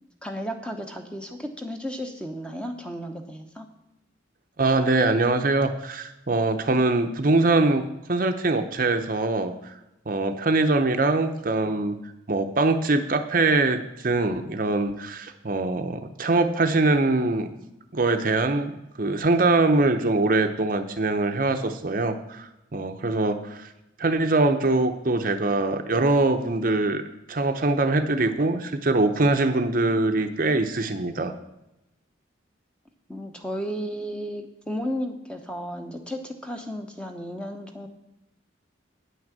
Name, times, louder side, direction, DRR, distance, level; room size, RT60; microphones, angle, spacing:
voice 1, 0.2-3.7 33.1-37.9, equal, 5° left, 4 dB, 0.9 m, -33 dB
voice 2, 4.6-9.7 10.1-12.0 12.3-17.5 17.9-23.7 24.0-27.0 27.3-31.3, right 2 dB, 45° right, 7 dB, 0.7 m, -23 dB
9.4 x 6.2 x 7.4 m, 0.89 s
head